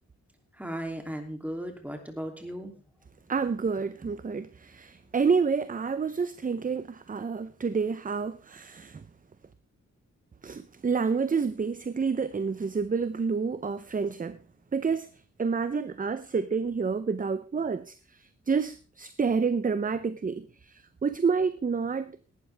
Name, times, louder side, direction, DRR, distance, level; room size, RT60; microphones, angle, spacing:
voice 1, 0.6-2.7, equal, 5° right, 2.8 m, -36 dB
voice 2, 3.3-9.0 10.4-14.4 14.7-15.1 15.4-17.9 18.5-22.2, right 5 dB, 30° right, 0.6 m, -29 dB
17.5 x 12.0 x 3.4 m
wide cardioid pair, 135°, 30 cm